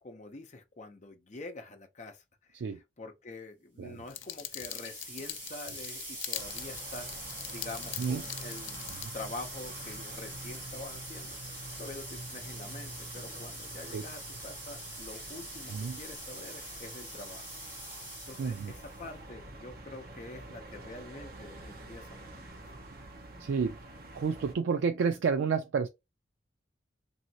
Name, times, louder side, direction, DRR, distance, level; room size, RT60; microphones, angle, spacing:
voice 1, 0.0-2.2 3.0-7.1 7.5-17.5 18.3-22.7, left 2 dB, 40° left, 0.6 m, -46 dB
sound 1, 4.1-9.1, left 13 dB, 80° left, 0.4 m, -42 dB
sound 2, 4.1-19.1, right 1 dB, 25° right, 1.7 m, -44 dB
sound 3, 6.3-24.5, right 2 dB, 50° right, 0.8 m, -48 dB
voice 2, 18.4-18.7 23.4-23.8 24.1-25.9, right 5 dB, 75° right, 0.3 m, -30 dB
3.1 x 2.7 x 2.8 m
head